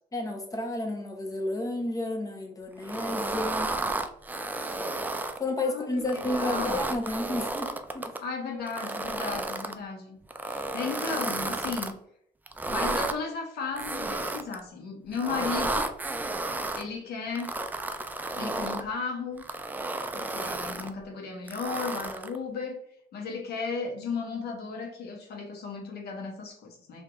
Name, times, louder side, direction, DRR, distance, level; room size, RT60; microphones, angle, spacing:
voice 1, 0.1-3.8 4.5-4.8 5.4-8.1, left 2 dB, 20° left, 3 dB, 1.0 m, -32 dB
sound 1, 2.8-5.4 6.0-8.2 8.7-9.8 10.3-11.9 12.5-13.2 13.8-14.6 15.1-16.8 17.4-18.9 19.4-20.9 21.5-22.4, right 2 dB, 10° right, 0.4 m, -32 dB
voice 2, 6.2-6.8 8.2-10.2 10.5-12.0 12.7-15.9 16.8-17.6 18.3-19.4 20.1-22.8 23.1-27.0, left 4 dB, 70° left, 2 dB, 1.2 m, -35 dB
5.0 x 2.7 x 3.5 m, 0.70 s
cardioid pair, 110°, 17 cm